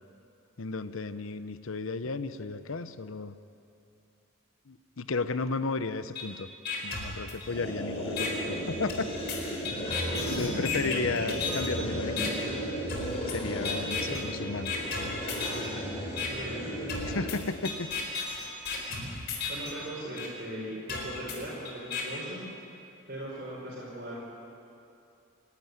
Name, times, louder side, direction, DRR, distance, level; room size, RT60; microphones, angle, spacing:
voice 1, 0.6-3.3 4.7-6.5 6.8-9.1 10.2-12.3 13.3-14.7 17.0-17.9, left 3 dB, 75° left, 12 dB, 0.8 m, -33 dB
sound 1, 6.2-6.3 6.7-7.7 8.2-8.3 8.9-11.7 12.2-12.3 12.9-13.4 13.7-14.2 14.7-15.7 16.2-16.3 16.9-19.7 20.2-20.3 20.9-22.0, left 4 dB, 50° left, 4.1 m, -34 dB
sound 2, 7.5-17.9, equal, 30° left, 4.3 m, -35 dB
voice 2, 16.3-17.0 18.9-19.1 19.5-24.3, right 1 dB, 45° right, -5 dB, 5.0 m, -40 dB
28.5 x 12.5 x 9.5 m, 2.7 s
head